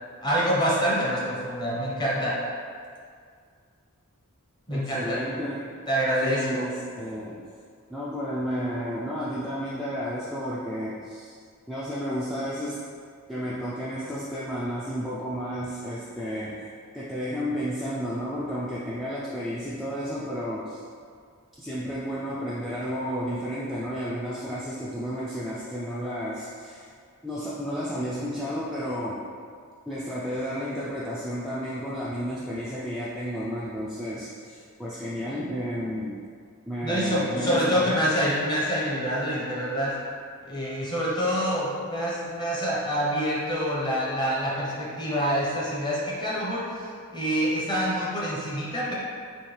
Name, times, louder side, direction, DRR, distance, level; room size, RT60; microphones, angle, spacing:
voice 1, 0.2-2.4 4.7-5.2 5.9-6.6 36.8-39.9 40.4-48.9, equal, 20° left, -6 dB, 0.8 m, -26 dB
voice 2, 4.7-5.8 6.2-7.4 7.9-11.3 11.7-12.8 13.3-20.8 21.6-26.9 27.2-29.2 29.9-36.2 36.7-38.0, equal, ahead, -9 dB, 0.3 m, -32 dB
4.3 x 2.7 x 3.2 m, 2.1 s
head